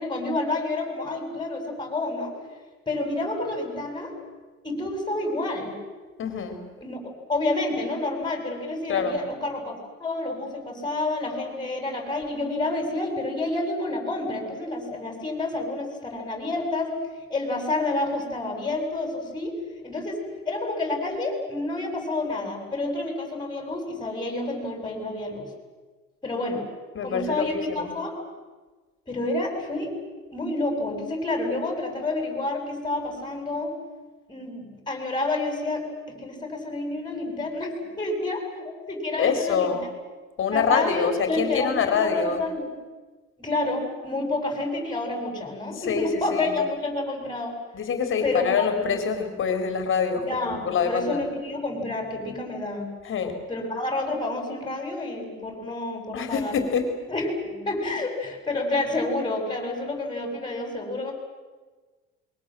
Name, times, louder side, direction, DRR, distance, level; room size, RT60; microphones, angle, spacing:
voice 1, 0.0-2.3 2.9-4.1 4.6-5.7 6.8-7.0 7.3-9.7 10.0-16.9 17.3-19.5 19.8-20.2 20.5-25.5 26.2-26.7 27.0-28.2 29.1-29.9 30.3-33.7 34.3-39.8 40.5-42.7 43.4-47.6 48.2-48.8 50.2-52.9 53.5-56.5 57.1-61.1, left 2 dB, 15° left, 3 dB, 7.5 m, -29 dB
voice 2, 6.2-6.6 8.9-9.2 26.9-27.9 39.2-39.9 40.4-42.4 45.8-46.6 47.7-51.2 53.0-53.4 56.1-56.9, left 6 dB, 45° left, 7 dB, 4.0 m, -25 dB
27.5 x 23.5 x 7.7 m, 1.3 s
cardioid pair, 120°, 29 cm